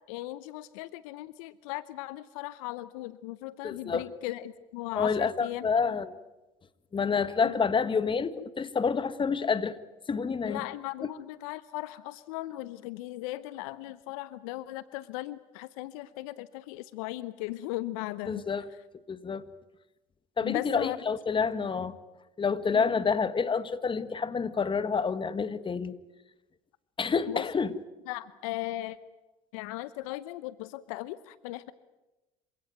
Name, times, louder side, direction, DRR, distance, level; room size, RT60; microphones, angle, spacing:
voice 1, 0.1-5.9 7.4-7.5 10.5-18.4 20.4-21.0 22.7-22.9 27.3-27.4 28.1-29.0 29.5-31.7, left 17 dB, 75° left, 17 dB, 0.8 m, -37 dB
voice 2, 3.6-4.0 5.0-6.2 6.9-9.7 10.1-10.6 18.3-18.7 19.1-19.4 20.4-21.9 22.4-25.9 27.0-27.7, left 5 dB, 30° left, 14 dB, 1.5 m, -28 dB
27.0 x 17.0 x 9.1 m, 1.0 s
hypercardioid pair, 70°, 18 cm